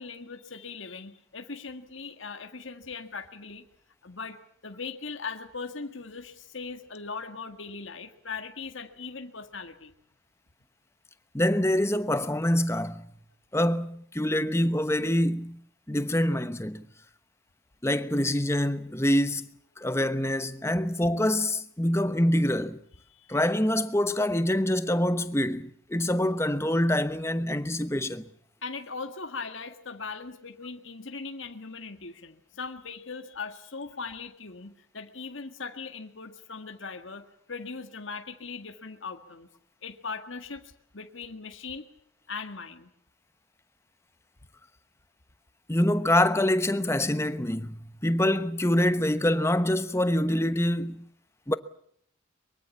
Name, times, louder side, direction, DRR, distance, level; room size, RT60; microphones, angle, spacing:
voice 1, 0.0-3.7 4.0-9.9 23.1-23.4 28.6-39.5 39.8-41.9 42.3-42.9, left 4 dB, 70° left, 1.8 m, -39 dB
voice 2, 11.3-13.1 13.5-15.6 15.9-16.9 17.8-19.5 19.8-22.8 23.3-28.3 45.7-51.0 51.5-51.6, left 1 dB, 15° left, 1.0 m, -25 dB
23.0 x 23.0 x 7.2 m
head